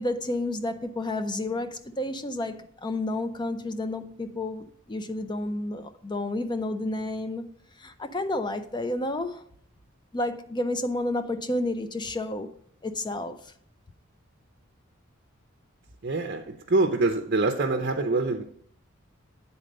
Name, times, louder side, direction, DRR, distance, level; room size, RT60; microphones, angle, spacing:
voice 1, 0.0-7.5 7.8-9.4 10.1-12.5 12.8-13.4, left 1 dB, 20° left, 0.5 m, -30 dB
voice 2, 16.0-18.4, right 3 dB, 45° right, 0.6 m, -25 dB
8.7 x 4.2 x 5.3 m
head